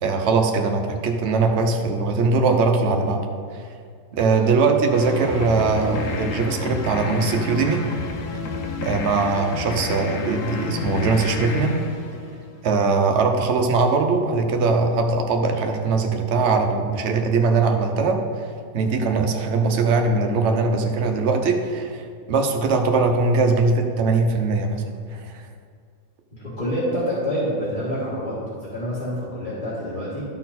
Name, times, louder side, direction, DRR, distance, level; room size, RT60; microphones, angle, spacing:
voice 1, 0.0-3.3 3.5-3.6 4.1-7.8 8.8-11.8 12.6-24.8 25.1-25.5, right 4 dB, 55° right, 4 dB, 0.7 m, -21 dB
sound 1, 4.9-12.7, left 4 dB, 60° left, 0.8 m, -30 dB
voice 2, 26.3-30.2, equal, 25° left, -10 dB, 2.0 m, -27 dB
12.5 x 4.3 x 4.1 m, 2.1 s
omnidirectional pair, 1.9 m